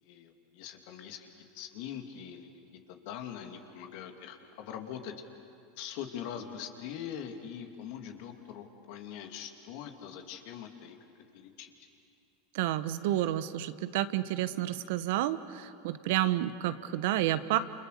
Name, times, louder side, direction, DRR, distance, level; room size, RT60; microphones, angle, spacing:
voice 1, 0.0-2.5 2.9-5.1 5.8-11.0 11.3-11.7, left 9 dB, 60° left, 4 dB, 2.7 m, -42 dB
voice 2, 12.5-17.6, right 13 dB, 65° right, 13 dB, 1.0 m, -30 dB
29.0 x 28.5 x 6.8 m, 2.5 s
hypercardioid pair, 95°, 0 cm